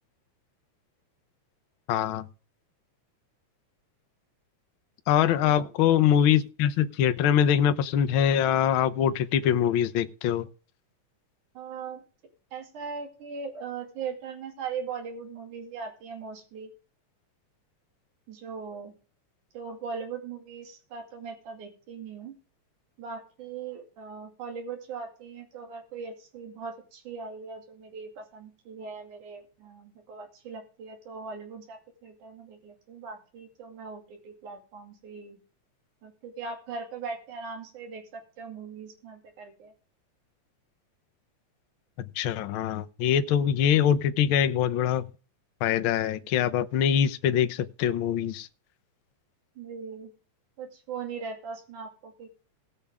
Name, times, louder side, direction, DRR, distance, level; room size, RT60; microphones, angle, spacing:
voice 1, 1.9-2.3 5.1-10.5 42.2-45.1 45.6-48.5, left 9 dB, 90° left, 1.1 m, -23 dB
voice 2, 11.6-12.0 12.5-16.7 18.3-18.9 19.5-22.3 23.0-35.4 36.0-39.7 49.6-50.1 50.6-52.3, right 5 dB, 85° right, 3.9 m, -40 dB
19.0 x 6.9 x 3.6 m
omnidirectional pair, 3.4 m